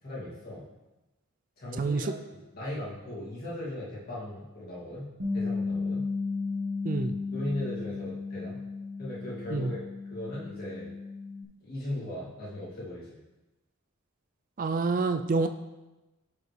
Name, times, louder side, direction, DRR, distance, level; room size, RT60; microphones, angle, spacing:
voice 1, 0.0-0.7 1.6-6.1 7.3-8.6 9.0-10.9 11.6-13.2, left 1 dB, 45° left, -7 dB, 2.5 m, -38 dB
voice 2, 1.8-2.1 6.8-7.1 9.5-9.7 14.6-15.5, right 3 dB, 40° right, 8 dB, 0.4 m, -27 dB
Bass guitar, 5.2-11.4, left 4 dB, 60° right, 1.5 m, -34 dB
12.0 x 5.0 x 3.3 m, 1.1 s
head